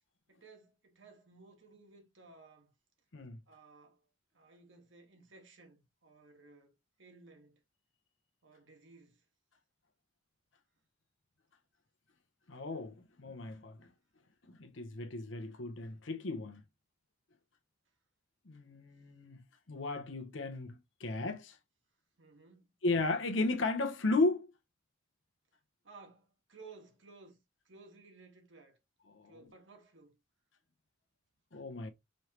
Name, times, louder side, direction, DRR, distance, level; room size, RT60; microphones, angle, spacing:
voice 1, 0.3-2.7 3.5-4.0 4.3-7.6 8.4-9.2 22.2-22.7 25.8-27.4 27.6-28.8 29.2-30.2, right 3 dB, 65° right, 1.5 m, -57 dB
voice 2, 12.5-13.9 14.5-16.6 18.5-19.4 19.7-21.6 22.8-24.5 29.1-29.3 31.5-31.9, left 2 dB, 70° left, 0.9 m, -35 dB
5.3 x 3.3 x 2.9 m
head